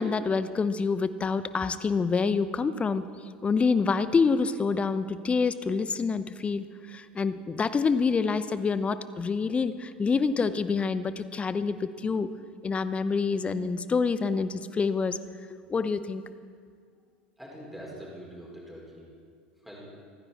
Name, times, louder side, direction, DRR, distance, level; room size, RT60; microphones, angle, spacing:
voice 1, 0.0-3.0 3.4-12.3 12.6-15.2 15.5-16.2, left 5 dB, 20° left, 14 dB, 0.7 m, -27 dB
voice 2, 17.4-19.1 19.6-19.9, equal, ahead, -4 dB, 4.7 m, -44 dB
26.5 x 9.9 x 4.3 m, 2.1 s
figure-of-eight pair, 75°, 6 cm